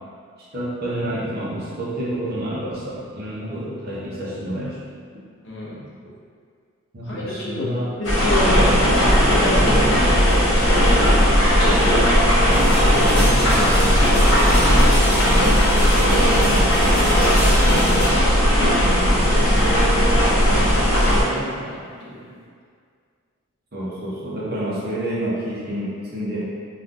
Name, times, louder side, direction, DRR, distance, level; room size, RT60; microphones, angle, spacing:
voice 1, 0.4-4.8 5.1-5.2 6.9-7.9 23.7-26.4, right 1 dB, 45° right, -7 dB, 0.7 m, -28 dB
voice 2, 5.4-5.8 7.0-7.7 8.0-10.4 12.9-13.8 21.1-22.3, left 1 dB, 55° left, -5 dB, 0.6 m, -29 dB
sound 1, 8.0-21.2, equal, 75° left, 1.0 m, -16 dB
sound 2, 12.5-22.4, equal, 15° right, 1.1 m, -30 dB
3.6 x 2.4 x 2.5 m, 2.1 s
head